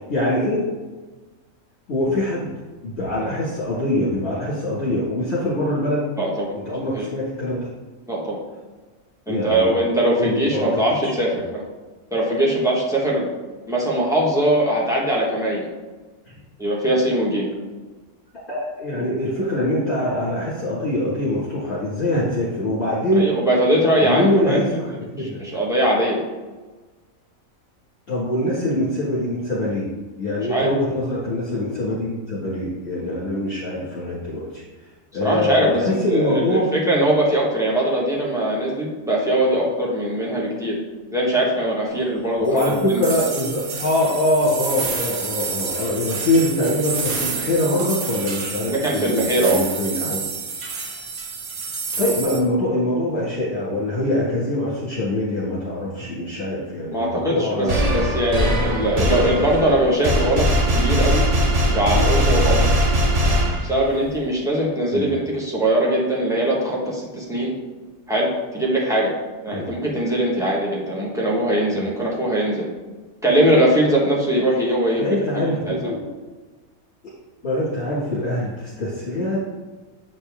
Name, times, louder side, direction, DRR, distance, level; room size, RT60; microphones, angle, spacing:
voice 1, 0.1-0.7 1.9-2.5 2.8-6.0 6.7-7.7 9.3-9.9 10.2-11.2 18.5-23.3 24.0-24.8 25.1-25.4 28.1-29.8 30.2-34.6 35.1-36.7 42.4-50.2 52.0-58.1 58.9-59.7 64.9-65.1 69.5-69.7 75.0-76.0 77.4-79.4, left 1 dB, 50° left, -9 dB, 1.9 m, -23 dB
voice 2, 6.2-6.5 6.9-7.1 8.1-8.4 9.3-11.6 12.1-13.3 13.7-15.7 16.6-17.5 23.1-24.6 25.2-26.2 30.5-30.7 35.2-40.7 41.1-42.5 42.9-43.0 48.7-49.6 56.9-61.2 61.7-62.6 63.6-67.5 68.1-68.3 68.5-69.1 69.4-72.7 73.2-75.1 75.7-75.9, right 1 dB, ahead, -5 dB, 1.2 m, -21 dB
sound 1, 42.6-52.4, right 5 dB, 75° right, 1.3 m, -29 dB
sound 2, 57.7-64.0, equal, 40° right, 0.6 m, -20 dB
7.7 x 4.3 x 3.5 m, 1.3 s
omnidirectional pair, 1.5 m